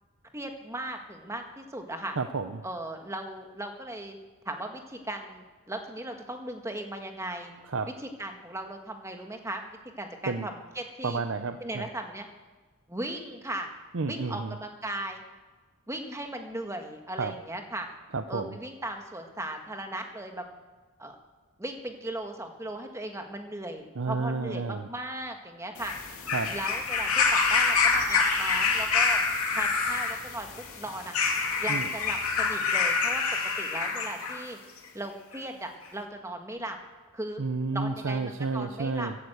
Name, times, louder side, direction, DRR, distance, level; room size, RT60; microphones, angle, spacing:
voice 1, 0.3-2.2 2.6-4.2 4.4-7.5 8.2-9.6 10.0-11.2 11.6-12.3 12.9-13.7 14.1-15.2 15.9-17.9 18.3-20.4 21.0-21.2 21.6-25.9 26.5-29.2 29.5-31.2 31.6-33.2 33.6-34.6 34.9-36.8 37.1-37.4 37.7-39.1, right 1 dB, 15° right, 4 dB, 1.5 m, -37 dB
voice 2, 2.2-2.6 7.6-7.9 10.3-10.5 11.0-11.9 13.9-14.6 17.2-17.3 18.1-18.6 24.0-24.9 26.3-26.6 31.7-31.9 37.4-39.1, right 4 dB, 60° right, 9 dB, 0.7 m, -31 dB
sound 1, 25.8-34.4 35.3-35.4, left 4 dB, 70° left, 2.7 m, -26 dB
15.5 x 11.0 x 8.0 m, 1.3 s
head